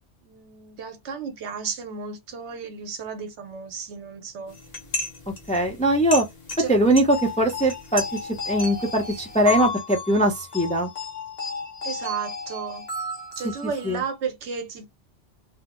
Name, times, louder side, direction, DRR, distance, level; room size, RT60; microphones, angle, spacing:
voice 1, 0.2-4.6 6.6-6.7 11.8-12.9 13.4-14.8, right 6 dB, 85° right, 1.0 m, -33 dB
sound 1, 4.5-9.7, left 1 dB, 40° left, 1.0 m, -36 dB
voice 2, 5.5-6.3 6.7-10.9 13.9-14.0, right 1 dB, 10° left, 0.4 m, -21 dB
sound 2, 7.1-14.0, left 4 dB, 65° left, 1.2 m, -33 dB
2.7 x 2.0 x 3.5 m
omnidirectional pair, 1.1 m